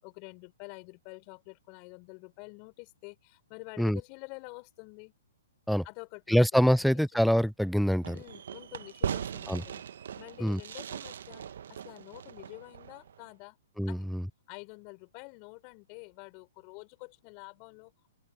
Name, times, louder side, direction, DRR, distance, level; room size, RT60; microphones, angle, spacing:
voice 1, 0.0-5.1 5.8-7.0 8.1-9.8 10.2-13.6 13.9-14.1 14.5-17.9, left 32 dB, 35° left, 6.5 m, -48 dB
voice 2, 6.3-8.2 9.5-9.6 10.4-10.6 13.8-14.2, equal, ahead, 0.3 m, -25 dB
Fireworks, 8.0-13.3, right 8 dB, 70° right, 1.0 m, -39 dB
open air
hypercardioid pair, 140°, 0 cm